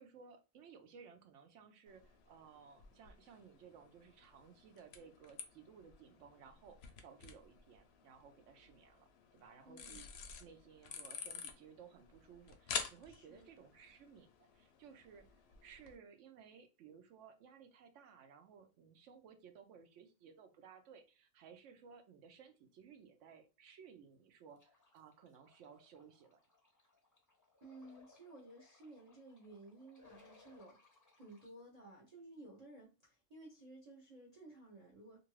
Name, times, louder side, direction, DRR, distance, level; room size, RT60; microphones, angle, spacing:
voice 1, 0.0-10.1 10.4-26.4, right 6 dB, 70° right, 0.9 m, -59 dB
sound 1, 1.9-16.0, left 6 dB, 65° left, 0.7 m, -50 dB
voice 2, 9.6-10.0 13.1-13.5 27.6-30.8 31.2-35.2, right 2 dB, 40° right, 0.6 m, -56 dB
sound 2, 24.6-31.5, left 4 dB, 20° left, 0.5 m, -67 dB
2.6 x 2.5 x 3.0 m
omnidirectional pair, 1.4 m